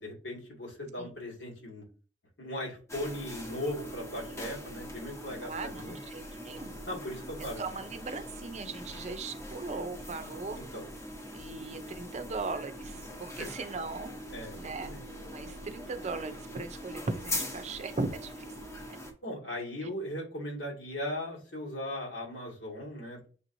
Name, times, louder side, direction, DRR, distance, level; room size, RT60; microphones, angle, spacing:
voice 1, 0.0-1.8 2.4-6.0 6.9-7.6 10.6-10.8 13.4-13.5 14.3-15.0 19.2-23.3, left 1 dB, 85° left, -3 dB, 2.2 m, -38 dB
sound 1, 2.9-19.1, left 1 dB, 15° left, 0.9 m, -42 dB
voice 2, 5.4-6.8 7.4-10.6 11.3-14.1 14.5-14.9 15.3-18.4 19.8-19.9, right 3 dB, 40° right, 8 dB, 0.6 m, -38 dB
6.7 x 3.0 x 2.7 m, 0.39 s
head